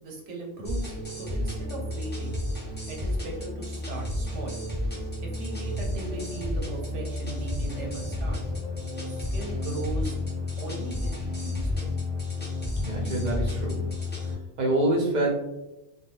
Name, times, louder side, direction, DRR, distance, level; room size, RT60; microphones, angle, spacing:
voice 1, 0.0-2.4 2.9-4.6 5.2-8.4 9.1-10.2 10.6-11.9, right 2 dB, 80° right, 1 dB, 1.0 m, -38 dB
sound 1, 0.6-14.3, left 2 dB, 10° left, 0.5 m, -31 dB
voice 2, 12.7-13.9 14.6-15.3, right 1 dB, 50° right, -1 dB, 0.6 m, -26 dB
2.3 x 2.2 x 3.1 m, 0.91 s
omnidirectional pair, 1.2 m